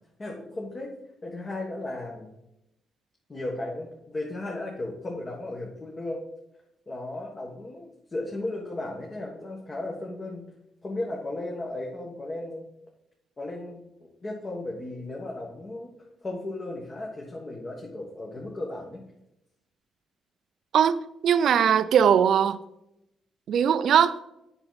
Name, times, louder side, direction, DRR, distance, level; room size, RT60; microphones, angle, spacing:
voice 1, 0.2-0.9 1.2-2.3 3.3-6.2 6.9-10.4 10.8-12.6 13.4-15.9 16.2-19.0, left 2 dB, 30° left, 1.5 m, -35 dB
voice 2, 20.7-22.6 23.5-24.2, right 8 dB, 65° right, 0.5 m, -20 dB
7.9 x 6.0 x 4.0 m
cardioid pair, 100°, 0 cm